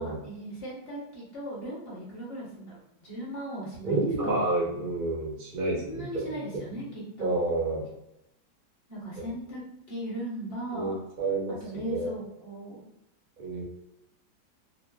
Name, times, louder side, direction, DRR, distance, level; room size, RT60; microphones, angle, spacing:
voice 1, 0.0-4.0 5.7-7.4 8.9-9.6 9.9-10.9 11.6-12.8, right 1 dB, 40° left, -7 dB, 1.0 m, -38 dB
voice 2, 3.8-6.4 7.2-7.8 10.7-11.6 11.9-12.1 13.4-13.6, right 2 dB, 70° right, -3 dB, 0.4 m, -29 dB
3.0 x 2.1 x 2.2 m, 0.83 s
omnidirectional pair, 1.9 m